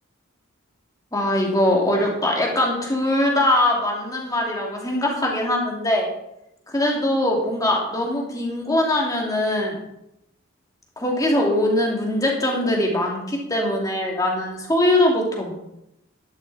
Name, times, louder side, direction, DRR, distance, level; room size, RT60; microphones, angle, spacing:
voice 1, 1.1-6.1 6.7-9.8 11.0-15.6, left 1 dB, 15° left, -1 dB, 2.7 m, -22 dB
12.0 x 11.5 x 4.2 m, 0.84 s
head